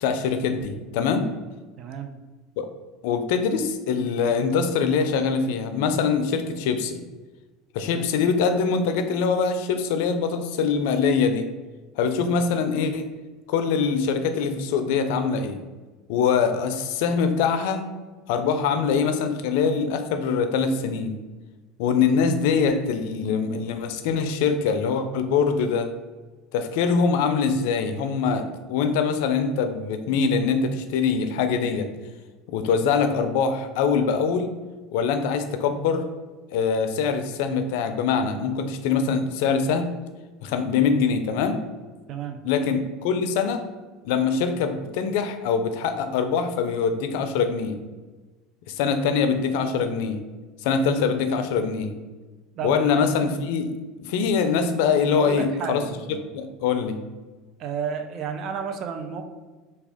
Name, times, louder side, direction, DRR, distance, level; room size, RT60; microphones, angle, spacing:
voice 1, 0.0-1.3 2.6-2.7 3.0-7.0 7.7-11.5 12.0-13.1 13.5-15.6 16.1-17.8 18.3-21.2 21.8-25.9 26.5-31.9 32.5-34.5 34.9-36.1 36.5-39.9 40.4-41.6 42.4-43.6 44.0-47.8 48.7-50.2 50.6-51.9 52.6-53.7 54.0-55.8 56.1-57.0, left 5 dB, 70° left, 8 dB, 0.3 m, -23 dB
voice 2, 1.8-2.1 7.9-8.1 12.0-12.4 42.1-42.4 52.5-53.1 55.1-56.3 57.6-59.2, right 7 dB, 50° right, 7 dB, 0.4 m, -32 dB
3.3 x 2.2 x 3.5 m, 1.3 s
hypercardioid pair, 90°, 0 cm